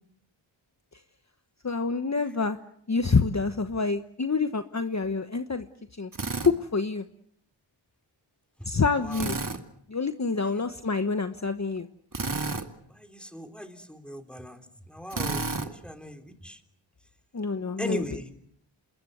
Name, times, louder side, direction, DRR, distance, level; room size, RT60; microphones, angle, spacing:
voice 1, 1.6-2.6 2.9-5.7 5.9-6.1 6.4-7.0 8.7-9.4 9.9-11.9 17.3-18.0, left 4 dB, 35° left, 9 dB, 1.2 m, -27 dB
Drill, 6.1-6.5 9.1-9.6 12.1-12.7 15.1-15.7, right 3 dB, 40° right, 2.4 m, -30 dB
voice 2, 9.0-9.4 10.3-10.6 12.9-16.6 17.7-18.3, equal, ahead, 6 dB, 3.8 m, -39 dB
27.5 x 21.5 x 8.0 m, 0.69 s
cardioid pair, 55°, 50 cm